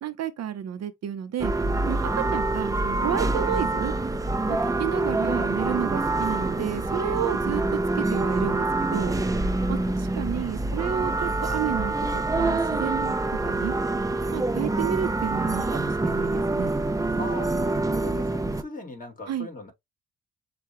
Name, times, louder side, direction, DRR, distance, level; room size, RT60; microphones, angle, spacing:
voice 1, 0.0-1.5 1.9-3.9 4.5-7.6 7.9-9.2 9.7-9.8 10.2-13.1 13.4-13.7 14.3-16.7 19.3-19.5, right 10 dB, 60° right, 0.7 m, -31 dB
sound 1, 1.4-18.6, right 2 dB, 10° right, 0.6 m, -26 dB
voice 2, 9.7-10.1 14.5-14.9 17.2-19.7, left 1 dB, 30° left, 2.4 m, -39 dB
6.6 x 2.3 x 3.0 m
cardioid pair, 90°, 30 cm